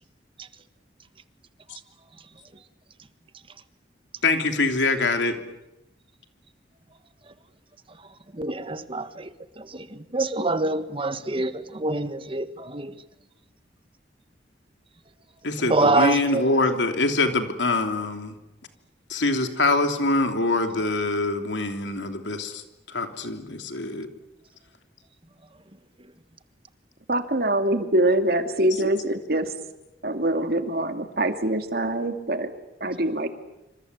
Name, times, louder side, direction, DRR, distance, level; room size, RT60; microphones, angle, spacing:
voice 1, 4.2-5.4 15.4-18.3 19.1-22.6 22.9-24.1 28.7-28.8, left 2 dB, 90° left, 3.1 m, -24 dB
voice 2, 8.3-9.3 9.6-13.0 15.7-16.6, right 2 dB, 30° right, 1.5 m, -26 dB
voice 3, 27.1-29.5 30.0-32.5 32.8-33.3, right 1 dB, 55° right, 2.5 m, -24 dB
27.0 x 26.5 x 8.1 m
head